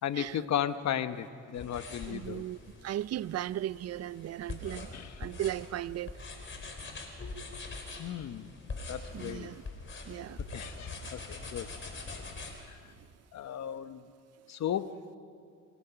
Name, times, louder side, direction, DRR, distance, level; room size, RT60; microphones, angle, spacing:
voice 1, 0.0-2.4 4.9-5.1 8.0-8.5 8.9-9.5 10.5-11.7 12.7-12.8 13.3-14.0 14.5-15.0, left 10 dB, 65° left, 1.1 m, -35 dB
sound 1, 1.5-12.5, left 3 dB, 40° left, 4.3 m, -43 dB
voice 2, 2.1-4.9 5.2-6.1 9.1-9.6 10.1-10.4, right 12 dB, 55° right, 0.5 m, -36 dB
27.5 x 19.0 x 5.8 m
cardioid pair, 90°, 30 cm